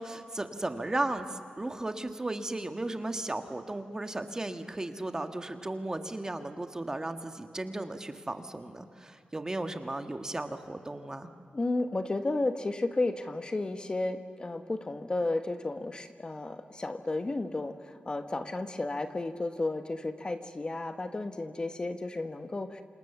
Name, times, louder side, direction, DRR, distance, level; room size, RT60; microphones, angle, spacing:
voice 1, 0.0-11.3, right 2 dB, 20° right, 7 dB, 1.7 m, -35 dB
voice 2, 11.5-22.8, left 2 dB, 30° left, 8 dB, 1.2 m, -33 dB
28.0 x 27.0 x 7.2 m, 2.3 s
wide cardioid pair, 105°, 3 cm